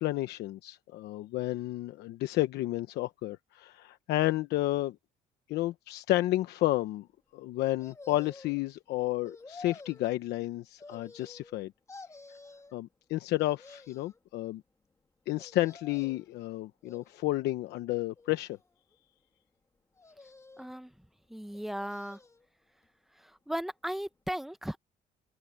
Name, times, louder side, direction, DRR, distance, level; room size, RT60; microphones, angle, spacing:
voice 1, 0.0-5.0 5.5-7.1 7.3-11.7 12.7-14.6 15.3-18.6, left 16 dB, 80° left, 1.0 m, -31 dB
sound 1, 7.8-8.6 9.2-10.1 10.8-11.6 11.9-12.7 13.4-14.2 15.4-16.3 16.8-17.5 18.2-18.9 20.0-20.8 21.5-22.4 22.8-22.9, left 3 dB, 15° left, 1.8 m, -51 dB
voice 2, 20.6-20.9 21.3-22.2 23.2-24.8, equal, ahead, 0.8 m, -36 dB
cardioid pair, 110°, 17 cm